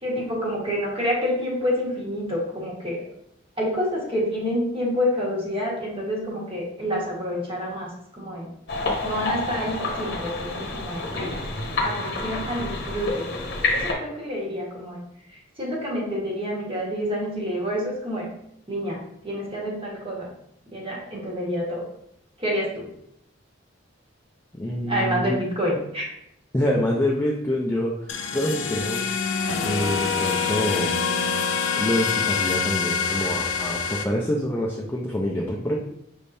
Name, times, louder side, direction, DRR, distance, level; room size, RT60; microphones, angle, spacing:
voice 1, 0.0-3.0 3.6-8.5 9.0-11.4 11.8-13.3 13.7-15.0 15.6-18.3 18.7-19.0 19.2-20.3 20.7-21.8 22.4-22.9 24.8-26.0, equal, 30° right, -4 dB, 1.3 m, -28 dB
sound 1, 8.7-13.9, left 2 dB, 60° left, 0.8 m, -28 dB
voice 2, 24.5-25.4 26.5-29.0 29.6-30.9 31.4-35.8, left 1 dB, 15° left, -3 dB, 0.4 m, -26 dB
sound 2, 28.1-34.0, left 5 dB, 80° left, 0.5 m, -25 dB
5.4 x 3.4 x 2.6 m, 0.76 s
head